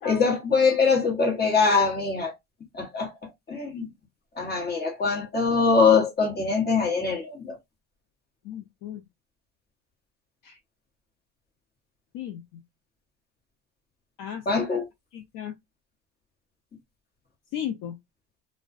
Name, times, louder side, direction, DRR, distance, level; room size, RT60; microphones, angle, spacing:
voice 1, 0.0-2.3 2.7-3.1 3.5-3.9 4.4-7.5 14.5-14.9, left 4 dB, 20° left, 1.1 m, -23 dB
voice 2, 8.4-9.0 10.4-10.6 12.1-12.4 14.2-14.4 15.1-15.5 17.5-17.9, left 9 dB, 50° left, 0.5 m, -35 dB
2.3 x 2.2 x 2.4 m
supercardioid pair, 110°, 44 cm